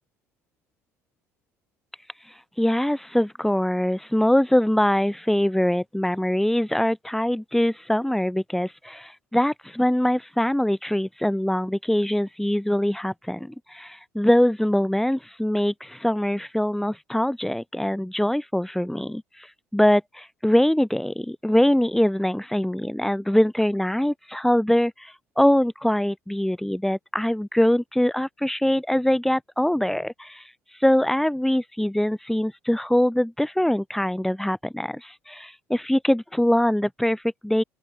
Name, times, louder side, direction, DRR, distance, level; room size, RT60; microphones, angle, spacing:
voice 1, 2.6-19.2 19.7-30.4 30.8-37.6, left 1 dB, 5° left, 1.8 m, -23 dB
open air
hypercardioid pair, 60°, 8 cm